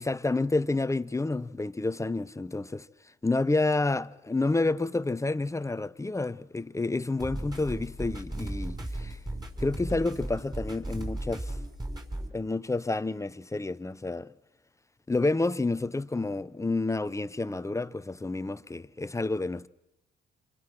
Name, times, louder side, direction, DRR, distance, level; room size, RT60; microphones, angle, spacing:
voice 1, 0.0-2.9 3.2-9.2 9.6-11.5 12.3-14.3 15.1-19.7, left 2 dB, 15° left, 0.9 m, -29 dB
sound 1, 7.2-12.3, right 1 dB, 20° right, 5.5 m, -36 dB
27.0 x 26.0 x 6.1 m
cardioid pair, 90°, 20 cm